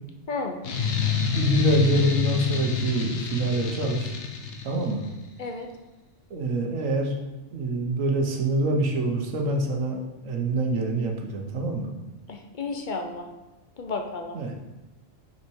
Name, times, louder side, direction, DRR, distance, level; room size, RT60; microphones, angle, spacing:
sound 1, 0.6-5.1, left 6 dB, 65° left, 1.1 m, -28 dB
voice 1, 1.3-4.1 4.6-5.1 6.3-7.1 7.5-11.9 14.3-14.6, right 1 dB, 85° right, 2 dB, 1.4 m, -25 dB
voice 2, 12.3-13.3 13.8-14.4, left 3 dB, 45° left, 4 dB, 0.8 m, -32 dB
5.9 x 5.8 x 4.6 m, 1.1 s
omnidirectional pair, 1.3 m